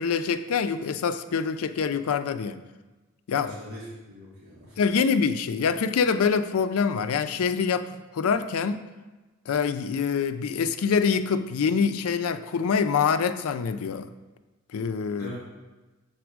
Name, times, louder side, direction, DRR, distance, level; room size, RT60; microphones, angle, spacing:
voice 1, 0.0-2.6 3.3-3.6 4.8-8.8 9.5-14.1 14.7-15.4, left 6 dB, 90° left, 11 dB, 0.4 m, -25 dB
voice 2, 3.4-4.8 14.9-15.4, equal, 85° right, -7 dB, 2.2 m, -42 dB
6.1 x 4.3 x 4.6 m, 1.2 s
head